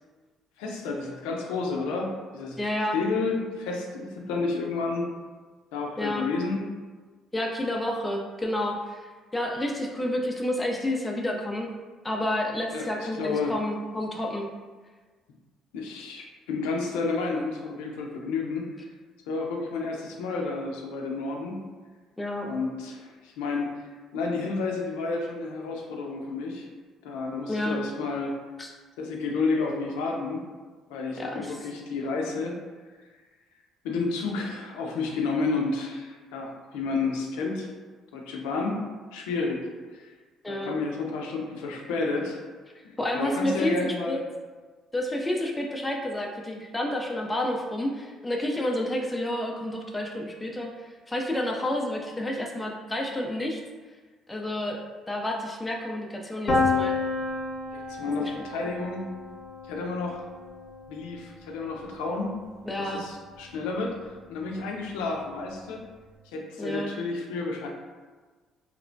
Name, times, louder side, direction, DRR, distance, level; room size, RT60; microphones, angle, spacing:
voice 1, 0.6-2.6 2.9-5.1 5.7-6.7 12.7-13.6 15.7-18.7 19.3-21.6 22.4-23.7 24.1-26.7 27.0-28.4 29.0-30.4 30.9-32.6 33.8-37.7 38.1-38.8 39.1-40.1 40.5-42.4 42.8-44.2 57.7-59.0 59.7-60.2 60.9-62.4 62.8-65.8 66.3-67.7, left 3 dB, 85° left, 0 dB, 0.4 m, -31 dB
voice 2, 2.6-3.0 6.0-6.3 7.3-9.1 9.3-11.7 12.0-14.5 22.2-22.5 27.5-27.9 28.6-28.7 31.2-31.6 40.4-40.7 43.0-44.2 44.9-53.6 54.3-54.8 55.1-57.0 58.2-58.3 58.6-58.7 62.6-63.0 66.6-66.9, left 1 dB, 15° left, 0 dB, 0.4 m, -30 dB
Piano, 56.5-62.2, left 3 dB, 50° left, 0.7 m, -31 dB
2.9 x 2.0 x 2.6 m, 1.4 s
supercardioid pair, 70°, 0 cm